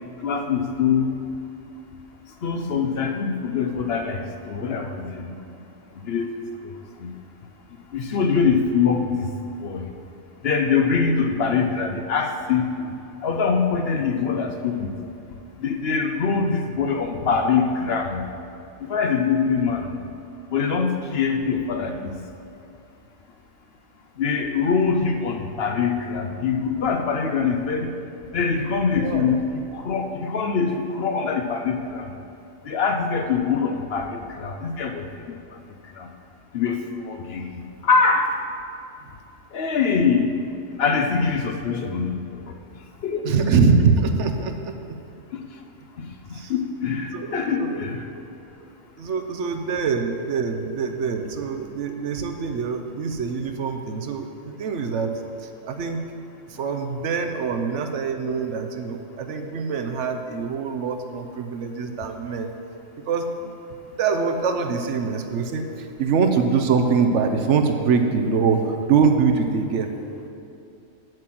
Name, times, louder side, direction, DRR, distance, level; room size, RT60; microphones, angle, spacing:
voice 1, 0.2-1.1 2.4-5.3 6.0-6.7 7.0-7.1 7.9-9.3 9.6-9.9 10.4-12.9 13.2-15.0 15.6-18.2 18.8-20.0 20.5-22.2 24.2-28.0 28.3-32.2 32.6-35.6 35.8-36.1 36.5-38.3 39.5-40.3 40.8-42.5 43.0-43.4 45.3-45.4 46.0-48.1, left 5 dB, 60° left, 5 dB, 0.8 m, -24 dB
voice 2, 28.9-29.4 43.2-44.8 46.3-46.5 47.1-47.8 49.0-55.1 55.4-56.0 56.5-62.5 63.0-63.5 64.0-69.9, right 5 dB, 70° right, 5 dB, 1.0 m, -24 dB
7.8 x 7.5 x 6.0 m, 2.6 s
omnidirectional pair, 1.3 m